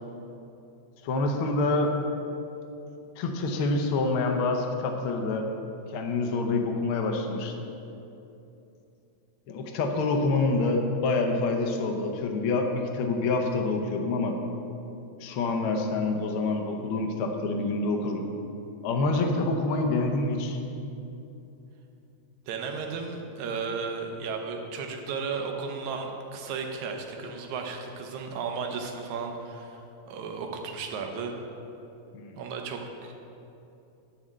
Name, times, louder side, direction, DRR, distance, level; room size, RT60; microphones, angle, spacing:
voice 1, 1.0-1.9 3.2-5.5 5.9-7.7 9.5-14.4 15.2-18.2 18.8-20.6 32.1-32.4, left 3 dB, 85° left, 3 dB, 1.2 m, -27 dB
voice 2, 22.5-31.4 32.4-33.1, right 5 dB, 75° right, 3 dB, 2.1 m, -34 dB
11.0 x 4.3 x 7.8 m, 2.8 s
omnidirectional pair, 3.5 m